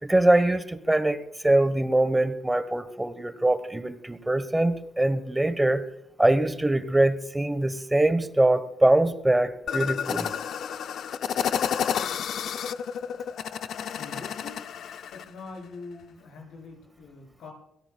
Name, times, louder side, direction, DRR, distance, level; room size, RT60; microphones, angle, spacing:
voice 1, 0.0-1.2 1.4-5.8 6.2-10.3, right 1 dB, 10° right, 12 dB, 1.2 m, -23 dB
sound 1, 9.7-15.3, left 8 dB, 65° left, 0.5 m, -30 dB
voice 2, 13.8-14.6 15.1-17.5, left 4 dB, 85° left, 0 dB, 7.3 m, -44 dB
23.5 x 17.0 x 2.4 m, 0.81 s
cardioid pair, 90°, 0 cm